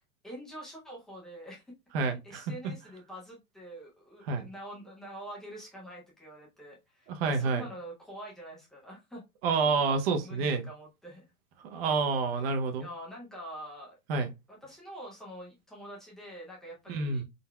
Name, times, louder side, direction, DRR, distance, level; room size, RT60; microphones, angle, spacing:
voice 1, 0.2-1.6 2.0-9.2 10.2-11.3 12.4-14.0 14.5-17.2, right 1 dB, ahead, 0.4 m, -46 dB
voice 2, 1.9-2.4 4.3-4.5 7.1-7.6 9.4-10.7 11.6-12.9 14.1-14.3 16.9-17.2, right 4 dB, 40° right, 0.7 m, -28 dB
4.2 x 3.9 x 2.2 m
supercardioid pair, 155°, 45 cm